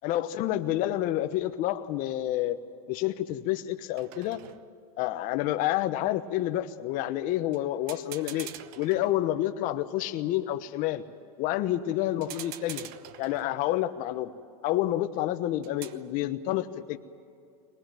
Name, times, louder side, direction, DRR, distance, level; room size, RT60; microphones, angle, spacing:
voice 1, 0.0-2.6 2.9-4.4 5.0-8.5 8.8-11.0 11.4-12.9 13.2-14.3 14.6-17.0, left 14 dB, 45° left, 8 dB, 1.1 m, -29 dB
sound 1, 1.4-1.6 4.0-5.0 7.5-7.6 7.9-9.6 12.2-13.8 15.6-16.1, right 13 dB, 45° right, 1.0 m, -45 dB
22.5 x 19.5 x 9.2 m, 2.4 s
supercardioid pair, 140°, 20 cm